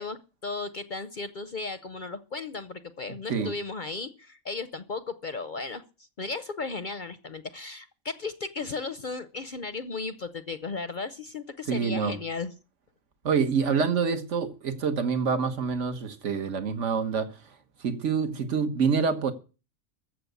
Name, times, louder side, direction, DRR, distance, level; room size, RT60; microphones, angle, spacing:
voice 1, 0.0-5.8 6.2-12.5, left 3 dB, 45° left, 0.7 m, -35 dB
voice 2, 11.7-12.2 13.2-17.3 17.8-19.3, right 5 dB, 60° right, 1.7 m, -26 dB
14.5 x 6.5 x 8.2 m
omnidirectional pair, 1.4 m